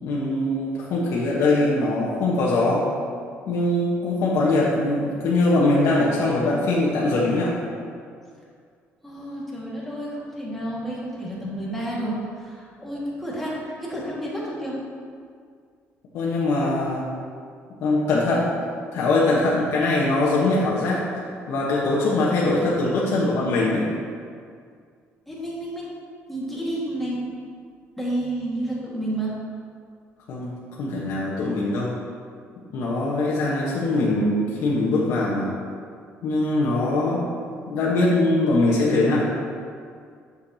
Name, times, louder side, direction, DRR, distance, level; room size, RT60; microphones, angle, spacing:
voice 1, 0.0-2.8 3.5-7.5 16.1-17.0 17.8-18.5 18.9-21.0 21.5-23.9 30.3-32.0 32.7-35.5 36.2-37.2 37.7-39.3, left 2 dB, 70° left, -6 dB, 1.2 m, -22 dB
voice 2, 9.0-14.8 25.3-26.0 26.3-27.2 28.0-29.4, right 1 dB, 5° left, -7 dB, 1.8 m, -30 dB
9.6 x 6.5 x 2.8 m, 2.2 s
cardioid pair, 145°, 5 cm